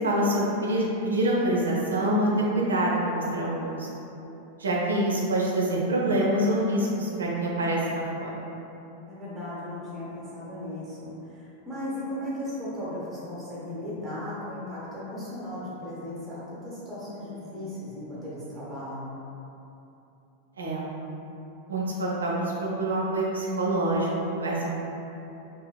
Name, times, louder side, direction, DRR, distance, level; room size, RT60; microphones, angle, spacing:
voice 1, 0.0-3.9 4.6-8.3 20.6-20.9 21.7-24.7, right 1 dB, 70° right, -4 dB, 0.7 m, -26 dB
voice 2, 9.1-19.2, left 1 dB, 10° right, -9 dB, 1.1 m, -36 dB
5.4 x 2.7 x 2.3 m, 2.9 s
figure-of-eight pair, 90°, 0 cm